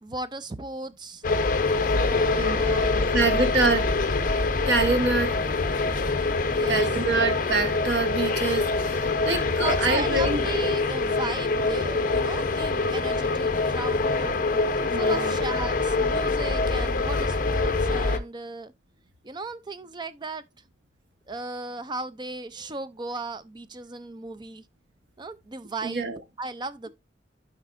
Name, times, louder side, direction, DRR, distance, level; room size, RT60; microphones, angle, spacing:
voice 1, 0.0-1.2 1.9-3.5 6.4-7.0 9.6-14.4 14.9-18.7 19.2-20.4 21.3-24.6 25.2-26.1 26.4-26.9, right 3 dB, 25° right, 0.5 m, -36 dB
sound 1, 1.2-18.2, left 3 dB, 50° left, 0.8 m, -25 dB
voice 2, 2.9-3.9 4.7-5.4 6.7-10.4 14.9-15.4 25.8-26.2, right 3 dB, 70° right, 1.3 m, -26 dB
12.5 x 4.6 x 2.5 m
head